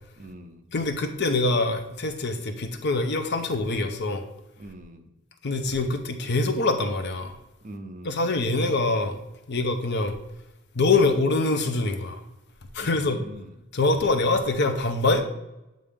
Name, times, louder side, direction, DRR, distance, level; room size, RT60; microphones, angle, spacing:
voice 1, 0.2-0.7 4.6-5.1 7.6-8.3 12.8-13.5, right 1 dB, 40° right, 5 dB, 0.7 m, -42 dB
voice 2, 0.7-4.3 5.4-7.4 8.0-9.2 9.5-10.2 10.7-12.2 12.7-13.2 13.7-15.2, left 3 dB, 55° left, 7 dB, 0.7 m, -24 dB
8.5 x 3.8 x 3.6 m, 0.93 s
head